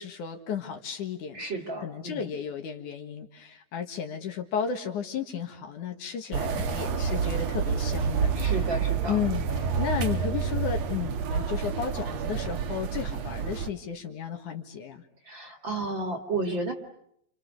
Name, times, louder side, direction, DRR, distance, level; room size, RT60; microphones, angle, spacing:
voice 1, 0.0-1.4 1.8-8.3 9.1-15.0, left 7 dB, 65° left, 4 dB, 3.0 m, -33 dB
voice 2, 1.3-2.3 8.4-9.2 15.3-16.7, right 2 dB, 35° right, 4 dB, 2.5 m, -32 dB
sound 1, 6.3-13.7, right 6 dB, 60° right, 2.1 m, -28 dB
29.5 x 29.0 x 6.6 m, 0.74 s
omnidirectional pair, 4.1 m